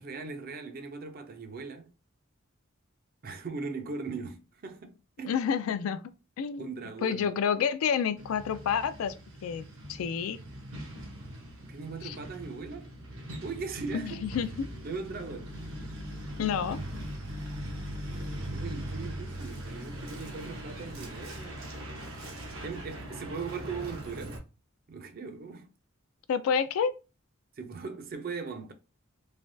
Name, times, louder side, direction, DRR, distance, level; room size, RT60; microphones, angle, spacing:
voice 1, 0.0-1.9 3.2-5.4 6.6-7.3 11.6-12.9 13.4-14.3 14.8-15.6 18.0-21.6 22.6-24.4 24.9-25.7 27.6-28.7, right 4 dB, 45° right, 0.5 m, -39 dB
voice 2, 5.2-6.0 6.4-6.7 7.0-9.1 9.4-10.4 12.0-12.1 13.9-14.7 16.4-16.8 26.3-26.9, left 7 dB, 90° left, 0.3 m, -29 dB
Truck, 8.2-24.4, equal, 75° right, 0.8 m, -40 dB
3.2 x 2.2 x 2.6 m
head